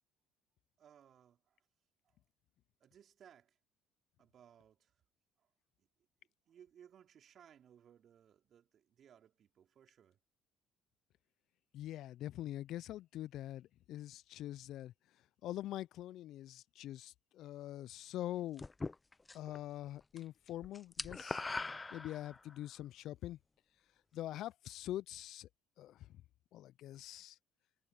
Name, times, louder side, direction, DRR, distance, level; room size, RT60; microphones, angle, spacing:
voice 1, 0.8-1.6 2.0-2.2 2.8-3.6 4.2-4.9 5.4-5.5 5.8-5.9 6.5-10.2, right 9 dB, 50° right, 4.4 m, -63 dB
voice 2, 11.7-14.9 15.4-18.6 19.3-21.4 21.9-23.4 24.1-25.5 25.8-26.1 26.5-27.4, left 13 dB, 65° left, 0.6 m, -44 dB
sound 1, 18.6-19.6 19.9-20.2 20.5-22.6, left 3 dB, 20° left, 1.0 m, -42 dB
hypercardioid pair, 65°, 0 cm